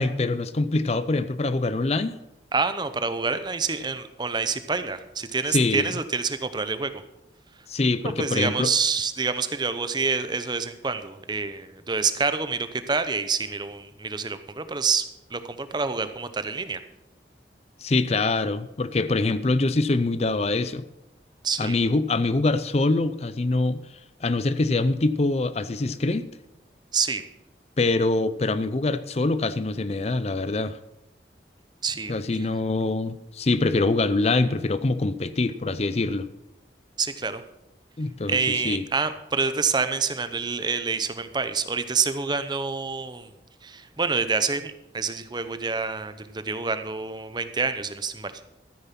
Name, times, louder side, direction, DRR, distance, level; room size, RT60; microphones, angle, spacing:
voice 1, 0.0-2.1 5.5-5.9 7.7-8.7 17.8-20.8 21.6-23.8 24.2-26.3 27.8-30.8 32.1-36.3 38.0-38.4 38.6-38.8, left 2 dB, 35° left, 13 dB, 0.5 m, -24 dB
voice 2, 2.5-6.9 8.0-16.8 21.4-21.8 26.9-27.2 31.8-32.5 37.0-37.4 38.3-43.3 43.6-48.3, right 4 dB, 25° right, 11 dB, 0.8 m, -27 dB
13.5 x 9.5 x 5.9 m, 0.90 s
head